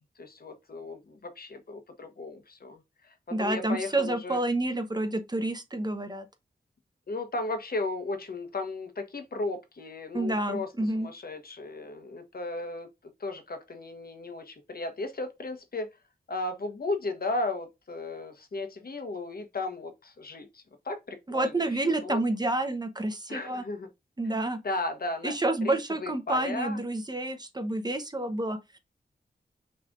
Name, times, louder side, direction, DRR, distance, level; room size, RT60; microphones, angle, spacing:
voice 1, 0.2-4.4 7.1-10.7 10.9-12.9 13.2-15.9 16.3-22.2 23.3-23.9 24.6-25.3 25.6-26.8, left 2 dB, 60° left, 1.2 m, -35 dB
voice 2, 3.3-6.3 10.1-11.1 21.3-23.6 24.2-24.6 25.2-28.8, right 2 dB, 25° right, 0.9 m, -29 dB
6.1 x 3.3 x 2.5 m
wide cardioid pair, 95°, 17 cm